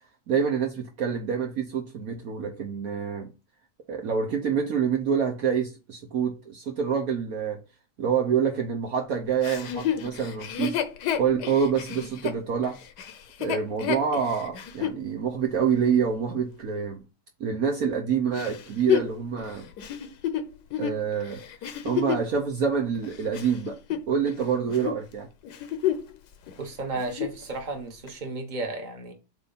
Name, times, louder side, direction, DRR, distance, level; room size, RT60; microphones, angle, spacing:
voice 1, 0.3-3.3 3.9-7.6 8.0-10.8 11.2-12.8 13.4-17.0 17.4-19.7 20.8-21.4 21.8-23.8 24.1-25.3, right 7 dB, 60° right, 1.3 m, -27 dB
Chuckle chortle, 9.4-15.0 15.6-15.7 18.4-22.3 22.9-24.4 24.7-25.0 25.4-26.2 26.5-26.6 26.9-27.4 28.1-28.2, left 10 dB, 75° left, 1.4 m, -30 dB
voice 2, 26.6-29.1, right 2 dB, 30° right, 1.4 m, -33 dB
7.9 x 2.7 x 5.6 m
omnidirectional pair, 1.8 m